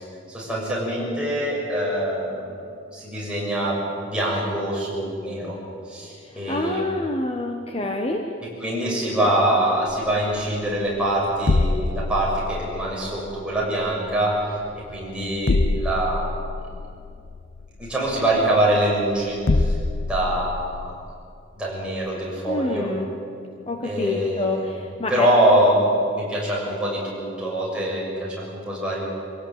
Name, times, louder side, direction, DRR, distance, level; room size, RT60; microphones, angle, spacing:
voice 1, 0.0-2.5 2.9-5.6 5.9-6.8 8.6-14.5 14.8-16.5 17.8-19.7 20.0-20.8 21.5-22.9 23.8-24.7 25.1-29.1, right 1 dB, 5° right, -5 dB, 7.0 m, -24 dB
voice 2, 6.2-8.2 22.5-23.1 23.7-25.3, left 2 dB, 30° left, 2 dB, 1.3 m, -27 dB
sound 1, 9.9-21.1, left 3 dB, 55° left, 0.6 m, -27 dB
24.5 x 17.0 x 8.9 m, 2.5 s
head